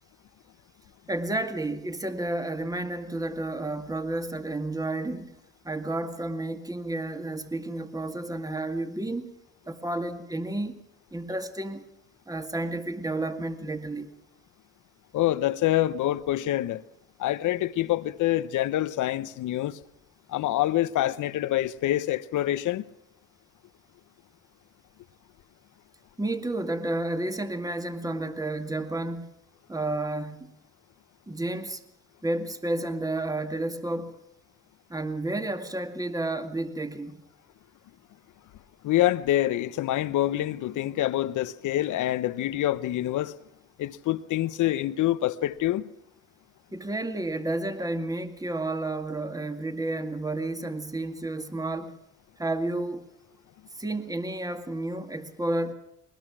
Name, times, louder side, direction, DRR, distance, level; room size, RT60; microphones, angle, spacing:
voice 1, 1.1-9.4 9.7-11.8 12.3-14.1 26.2-29.3 29.7-30.5 31.3-31.8 32.2-34.2 34.9-37.2 46.7-52.0 52.4-53.1 53.8-55.7, right 2 dB, 10° right, 2.1 m, -31 dB
voice 2, 15.1-16.8 17.2-19.8 20.3-22.8 38.8-43.3 43.8-45.9, left 14 dB, 80° left, 1.0 m, -26 dB
21.0 x 20.5 x 6.2 m
cardioid pair, 90°, 30 cm